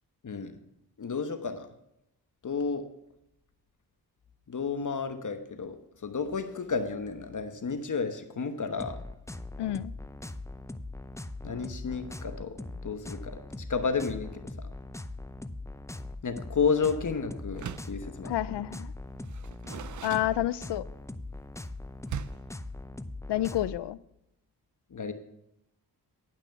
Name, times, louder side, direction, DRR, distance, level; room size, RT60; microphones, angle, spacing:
voice 1, 1.0-1.7 2.4-2.8 4.5-9.0 11.4-13.4 13.7-14.7 16.2-18.3 24.9-25.1, left 5 dB, 45° left, 8 dB, 1.1 m, -32 dB
sound 1, 8.8-23.8, left 2 dB, 5° left, 0.6 m, -41 dB
voice 2, 9.6-9.9 18.2-18.9 20.0-20.8 23.3-24.0, left 14 dB, 80° left, 18 dB, 0.5 m, -29 dB
Door, 17.5-18.0 19.2-20.9 22.1-22.6, right 9 dB, 45° right, 0.5 m, -40 dB
10.5 x 6.0 x 5.7 m, 0.83 s
cardioid pair, 50°, 41 cm